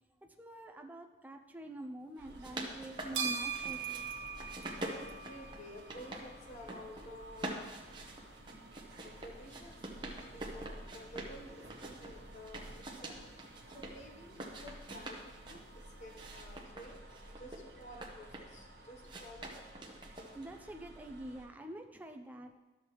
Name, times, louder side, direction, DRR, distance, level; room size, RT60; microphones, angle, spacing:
voice 1, 0.4-4.3 20.3-22.6, right 1 dB, 10° right, 4 dB, 0.4 m, -46 dB
sound 1, 2.2-4.0 4.3-6.2 6.5-7.0 7.3-11.4 11.7-13.9 14.3-15.6 16.1-18.6 19.0-20.6, right 1 dB, 25° right, 0.9 m, -45 dB
sound 2, 2.2-21.5, right 1 dB, 60° right, 1.1 m, -54 dB
sound 3, 2.8-16.6, right 6 dB, 90° right, 0.9 m, -46 dB
voice 2, 4.7-7.6 9.0-13.3 13.7-17.0 17.4-19.9, equal, 35° left, 2 dB, 0.9 m, -52 dB
12.5 x 7.2 x 3.1 m, 1.2 s
head